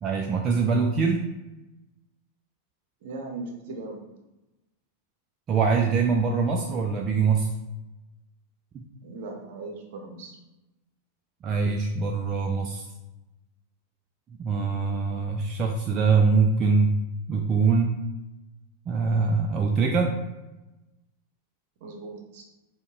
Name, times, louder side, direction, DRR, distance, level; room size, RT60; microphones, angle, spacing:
voice 1, 0.0-1.2 5.5-7.5 8.7-8.8 11.4-12.9 14.4-16.9 17.3-18.0 18.9-20.2, right 4 dB, 25° right, 1 dB, 0.3 m, -23 dB
voice 2, 3.0-4.0 9.0-10.4 21.8-22.4, right 3 dB, 50° right, 2 dB, 0.7 m, -38 dB
5.3 x 2.2 x 2.4 m, 1.0 s
figure-of-eight pair, 90°, 0 cm